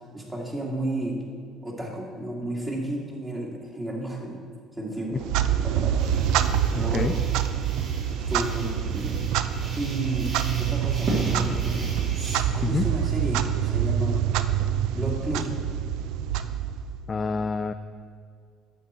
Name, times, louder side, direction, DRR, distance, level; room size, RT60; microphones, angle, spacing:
voice 1, 0.1-1.2 1.6-4.4 4.8-5.3 5.6-6.0 6.8-7.2 8.1-9.2 9.8-11.9 12.5-14.2 14.9-15.5, right 1 dB, 20° right, -2 dB, 2.1 m, -32 dB
Clock, 5.1-17.1, right 9 dB, 75° right, 0.3 m, -26 dB
sound 1, 6.0-12.4, right 1 dB, 45° right, 2.1 m, -36 dB
voice 2, 6.7-7.1 12.6-12.9 17.1-17.7, left 4 dB, 30° left, 8 dB, 0.3 m, -27 dB
8.8 x 6.5 x 4.3 m, 2.1 s
supercardioid pair, 80°, 0 cm